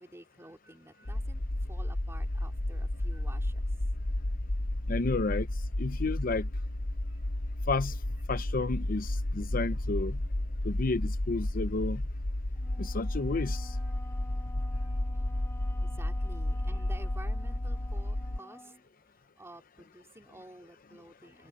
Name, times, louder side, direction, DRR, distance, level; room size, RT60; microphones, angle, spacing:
voice 1, 0.0-1.4 1.7-3.6 7.0-7.2 14.7-14.8 15.8-18.7 19.4-21.5, right 1 dB, 15° right, 2.8 m, -51 dB
sound 1, 1.0-18.4, left 1 dB, 70° left, 1.3 m, -32 dB
voice 2, 4.9-5.5 5.8-6.5 7.7-7.9 8.3-10.2 10.6-12.0 12.8-13.7, left 3 dB, 45° left, 0.7 m, -31 dB
Wind instrument woodwind instrument, 12.6-18.8, left 2 dB, 15° left, 2.2 m, -52 dB
head